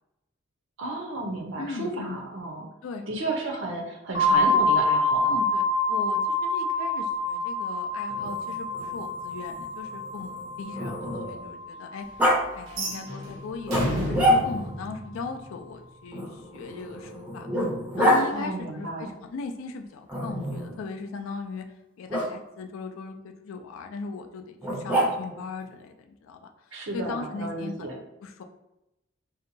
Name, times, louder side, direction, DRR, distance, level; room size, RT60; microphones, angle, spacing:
voice 1, 0.8-2.7 3.1-5.4 18.3-19.1 26.7-27.9, right 2 dB, 65° right, 1 dB, 0.5 m, -33 dB
voice 2, 1.6-2.2 2.8-3.1 5.2-12.1 12.5-17.5 18.0-21.6 22.0-26.4 26.7-28.4, left 4 dB, 75° left, 5 dB, 0.3 m, -38 dB
sound 1, 4.1-13.8, left 2 dB, 40° left, 0.6 m, -27 dB
Growling, 8.1-11.5 12.2-12.4 13.7-14.8 16.1-18.2 20.1-20.8 22.1-22.3 24.6-25.4, equal, 5° right, 0.4 m, -27 dB
sound 2, 12.7-15.8, equal, 85° right, 1.0 m, -32 dB
2.7 x 2.2 x 2.6 m, 0.90 s
head